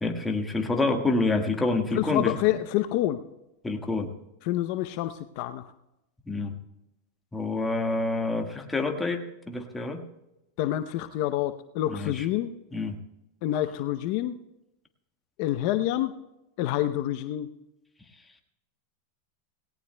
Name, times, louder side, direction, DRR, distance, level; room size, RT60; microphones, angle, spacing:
voice 1, 0.0-2.4 3.6-4.1 6.3-6.6 7.3-10.0 11.9-12.3 12.7-13.0, left 3 dB, 10° left, 3 dB, 1.6 m, -27 dB
voice 2, 1.9-3.2 4.4-5.7 10.6-12.5 13.4-14.4 15.4-16.1 16.6-17.5, left 13 dB, 55° left, 10 dB, 0.6 m, -27 dB
18.5 x 17.5 x 2.2 m, 0.90 s
supercardioid pair, 125°, 0 cm